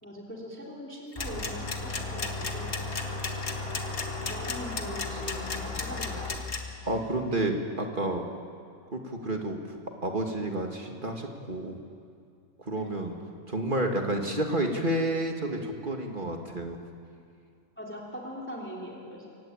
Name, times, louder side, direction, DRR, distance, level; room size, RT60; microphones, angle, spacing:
voice 1, 0.0-2.8 4.2-6.5 7.3-7.4 12.8-13.0 17.8-19.3, equal, 10° left, -3 dB, 3.5 m, -41 dB
sound 1, 1.1-6.6, left 4 dB, 65° left, 2.1 m, -34 dB
sound 2, 1.2-6.4, left 3 dB, 25° left, 3.5 m, -36 dB
voice 2, 6.8-8.3 8.9-11.8 12.6-13.2 13.5-16.8, right 1 dB, 35° right, 2 dB, 2.2 m, -30 dB
25.0 x 16.0 x 9.1 m, 2.4 s
omnidirectional pair, 1.5 m